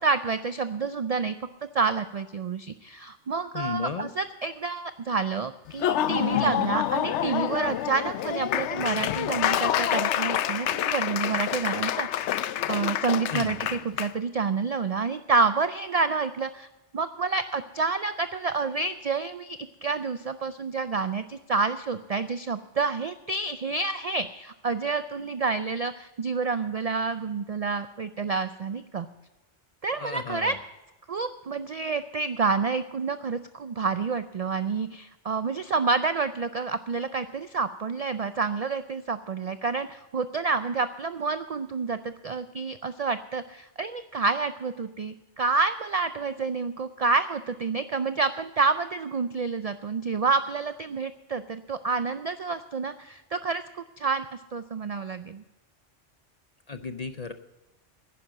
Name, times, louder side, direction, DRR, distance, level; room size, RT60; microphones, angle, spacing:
voice 1, 0.0-1.3 1.7-12.4 12.7-16.7 16.9-29.1 29.8-30.5 31.1-55.4, right 4 dB, 60° right, 12 dB, 0.4 m, -28 dB
voice 2, 3.5-4.1 6.3-6.5 13.3-13.5 29.9-30.6 56.7-57.3, left 5 dB, 50° left, 9 dB, 0.5 m, -33 dB
Laughter / Applause, 5.7-14.1, left 11 dB, 75° left, 0.9 m, -27 dB
10.5 x 10.0 x 7.3 m, 1.0 s
omnidirectional pair, 1.2 m